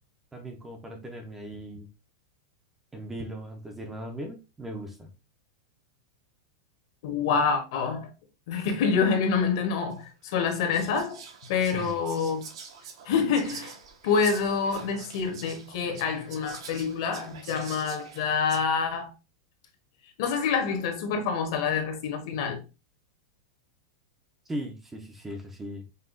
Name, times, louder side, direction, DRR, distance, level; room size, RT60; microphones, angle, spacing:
voice 1, 0.3-1.9 2.9-5.1 11.7-12.0 24.5-25.8, equal, 10° right, 0.4 m, -38 dB
voice 2, 7.0-8.1 8.5-11.2 11.5-12.4 13.1-13.7 14.0-19.1 20.2-22.6, left 5 dB, 55° left, 0.9 m, -27 dB
Whispering, 9.9-10.0 10.5-18.6, right 6 dB, 80° right, 1.0 m, -45 dB
5.4 x 2.3 x 2.5 m
supercardioid pair, 170°, 3 cm